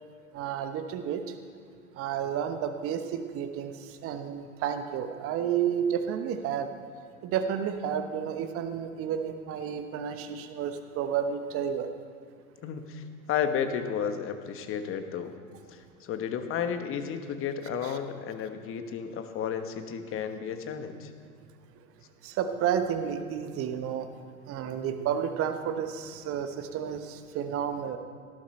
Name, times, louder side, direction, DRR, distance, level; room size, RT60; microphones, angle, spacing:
voice 1, 0.3-1.2 2.0-6.7 7.2-11.9 17.8-17.9 22.2-24.1 24.5-28.0, right 8 dB, 30° right, 8 dB, 1.1 m, -31 dB
voice 2, 12.6-15.3 15.7-21.1, left 7 dB, 30° left, 8 dB, 1.3 m, -32 dB
18.0 x 11.5 x 4.4 m, 2.3 s
figure-of-eight pair, 95°, 43 cm